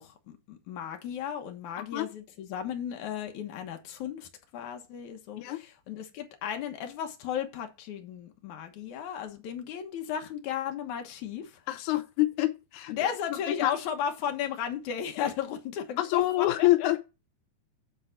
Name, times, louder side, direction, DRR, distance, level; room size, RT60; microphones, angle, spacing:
voice 1, 0.0-11.6 12.9-16.9, left 8 dB, 60° left, 2.2 m, -35 dB
voice 2, 11.7-13.1 13.6-13.7 16.0-17.0, left 17 dB, 85° left, 1.7 m, -26 dB
10.0 x 4.0 x 5.9 m
omnidirectional pair, 4.5 m